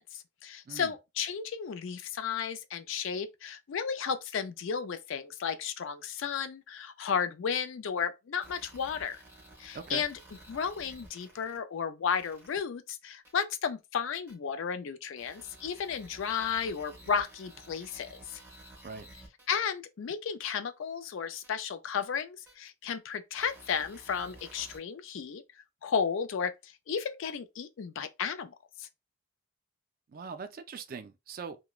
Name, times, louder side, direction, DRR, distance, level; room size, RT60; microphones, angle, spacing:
voice 1, 0.0-9.2 9.6-10.2 10.5-18.4 19.5-28.9, left 7 dB, 65° left, 0.4 m, -33 dB
sound 1, 8.4-11.6 12.1-12.6 13.3-13.4 14.3-14.4 15.2-19.5 20.4-20.5 21.4-21.5 22.5-22.6 23.4-24.8, right 1 dB, 10° right, 1.0 m, -53 dB
voice 2, 9.7-10.0 18.8-19.1 30.1-31.6, right 5 dB, 45° right, 0.4 m, -41 dB
2.9 x 2.1 x 2.3 m
head